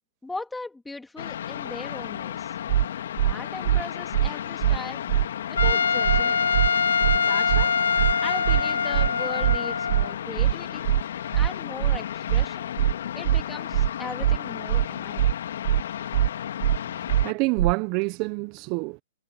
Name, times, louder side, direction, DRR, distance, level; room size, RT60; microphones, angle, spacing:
voice 1, 0.2-2.6 3.2-5.0 5.5-6.4 7.3-7.7 8.2-10.9 11.3-12.7 13.1-15.3, left 2 dB, 5° left, 2.5 m, -38 dB
sound 1, 1.2-17.3, left 10 dB, 65° left, 2.9 m, -34 dB
sound 2, 2.7-2.8 3.2-3.3 3.6-3.8 4.1-4.3 4.6-4.8 5.1-5.2 5.6-5.7 6.0-6.2 6.5-6.7 7.0-7.2 7.5-7.6 8.0-8.1 8.4-8.6 8.9-9.1 9.4-9.6 9.9-10.0 10.4-10.5 10.8-11.0 11.3-11.5 11.8-12.0 12.3-12.4 12.8-12.9 13.2-13.4 13.7-13.9 14.2-14.4 14.7-14.8 15.2-15.3 15.6-15.8 16.1-16.3 16.6-16.8 17.1-17.2 17.6-17.7, right 13 dB, 60° right, 2.4 m, -21 dB
Trumpet, 5.6-10.2, left 6 dB, 85° left, 1.8 m, -24 dB
voice 2, 17.2-19.0, right 27 dB, 40° right, 0.7 m, -27 dB
hypercardioid pair, 130°, 0 cm